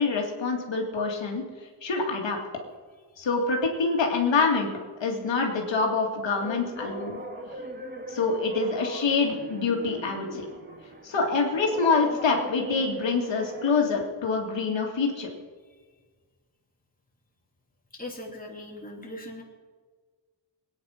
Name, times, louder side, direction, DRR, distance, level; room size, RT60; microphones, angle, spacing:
voice 1, 0.0-1.4 1.8-2.4 3.2-4.7 5.0-7.2 8.1-10.4 11.0-15.3, left 4 dB, 90° left, 1 dB, 2.4 m, -26 dB
sound 1, 6.4-13.8, right 1 dB, 25° right, 2.3 m, -40 dB
voice 2, 17.9-19.4, left 1 dB, 20° left, -2 dB, 3.1 m, -39 dB
22.5 x 9.6 x 5.8 m, 1.5 s
wide cardioid pair, 130°, 43 cm